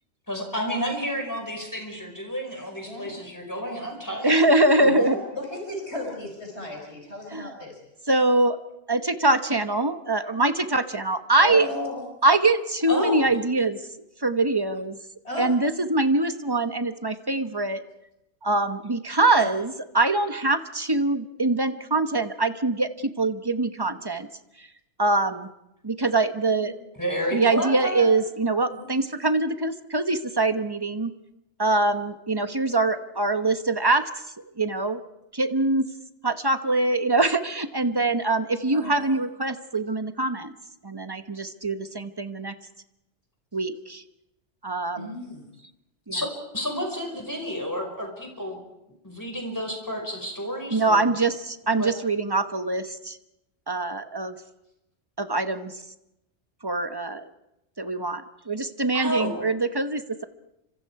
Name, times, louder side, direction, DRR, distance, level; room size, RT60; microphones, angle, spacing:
voice 1, 0.3-4.4 12.9-13.3 27.0-28.1 46.1-46.3 46.5-48.6 49.0-51.1 51.8-51.9 58.9-59.4, equal, 15° left, 2 dB, 5.5 m, -30 dB
voice 2, 2.8-3.1 4.8-7.8 11.4-12.0 15.2-15.5 19.4-19.5 26.5-26.7 28.7-28.8 38.7-39.1 45.0-45.4, left 1 dB, 70° left, 1 dB, 5.5 m, -34 dB
voice 3, 4.2-5.2 7.3-7.5 8.1-8.6 8.9-11.7 12.2-13.8 14.2-15.0 15.4-17.8 18.4-24.3 24.6-24.7 25.0-25.5 25.8-26.7 27.3-31.1 31.6-34.0 34.6-35.0 35.3-35.9 36.2-40.5 40.8-42.5 43.5-44.0 44.6-45.2 46.1-46.2 50.7-53.2 53.7-54.4 55.2-55.8 56.6-57.3 57.8-60.2, right 2 dB, 20° right, 9 dB, 1.0 m, -23 dB
30.0 x 25.5 x 4.8 m, 0.90 s
omnidirectional pair, 1.2 m